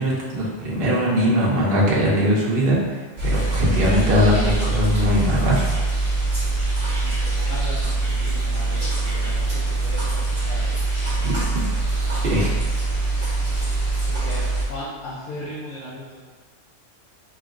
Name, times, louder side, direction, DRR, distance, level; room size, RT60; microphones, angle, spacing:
voice 1, 0.0-5.7 11.2-11.4 12.2-12.5, equal, 55° right, -6 dB, 0.9 m, -21 dB
sound 1, 3.2-14.6, right 2 dB, 25° right, 0.8 m, -23 dB
voice 2, 6.8-10.8 14.1-16.2, left 1 dB, 80° left, -9 dB, 1.2 m, -37 dB
4.1 x 2.9 x 2.5 m, 1.4 s
omnidirectional pair, 1.3 m